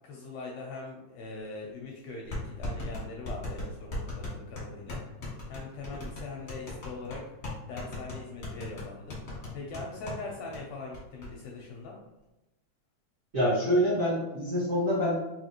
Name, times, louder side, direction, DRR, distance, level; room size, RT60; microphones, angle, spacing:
voice 1, 0.0-12.0, left 3 dB, 80° left, -1 dB, 1.5 m, -42 dB
sound 1, 1.4-1.5 2.3-10.2 10.5-10.6 10.9-11.3, left 2 dB, 55° left, 0.7 m, -37 dB
voice 2, 13.3-15.1, equal, 70° right, -10 dB, 0.7 m, -26 dB
4.8 x 2.6 x 2.9 m, 0.98 s
omnidirectional pair, 3.4 m